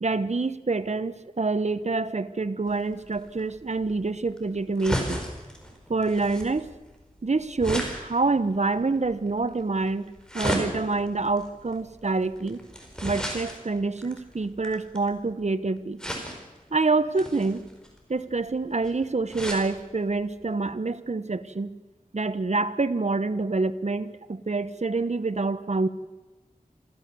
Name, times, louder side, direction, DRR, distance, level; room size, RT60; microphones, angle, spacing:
voice 1, 0.0-5.2 5.9-6.7 7.2-10.0 10.3-12.6 13.0-16.0 16.7-17.7 18.1-21.7 22.1-25.9, right 3 dB, 55° right, 12 dB, 1.1 m, -26 dB
sound 1, 2.7-15.3 16.0-16.6 17.1-19.7 20.2-20.3 20.5-20.6, equal, 5° left, 4.5 m, -35 dB
26.5 x 14.5 x 7.1 m, 1.1 s
wide cardioid pair, 60°, 14 cm